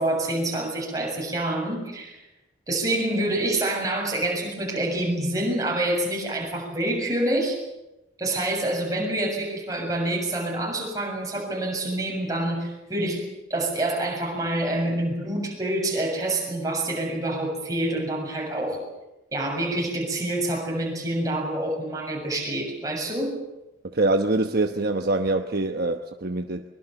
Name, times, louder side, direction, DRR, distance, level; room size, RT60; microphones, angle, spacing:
voice 1, 0.0-2.2 2.7-7.6 8.2-13.2 13.5-18.8 19.3-23.4, right 1 dB, 20° right, 0 dB, 7.2 m, -27 dB
voice 2, 23.8-26.6, right 2 dB, 55° right, 5 dB, 1.1 m, -24 dB
23.5 x 23.0 x 7.1 m, 0.95 s
head